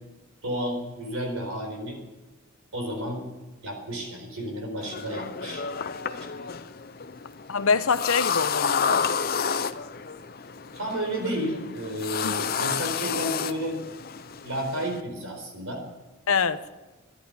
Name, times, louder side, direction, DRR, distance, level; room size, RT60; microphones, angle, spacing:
voice 1, 0.4-2.0 2.7-3.2 3.6-5.7 6.1-6.2 10.8-13.8 14.4-15.8, equal, 70° right, 3 dB, 4.4 m, -31 dB
sound 1, 4.8-15.0, left 6 dB, 45° left, 0.6 m, -30 dB
voice 2, 7.5-9.2 12.2-12.3 16.3-16.6, left 5 dB, 75° left, 12 dB, 0.8 m, -25 dB
14.0 x 11.5 x 6.9 m, 1.1 s
head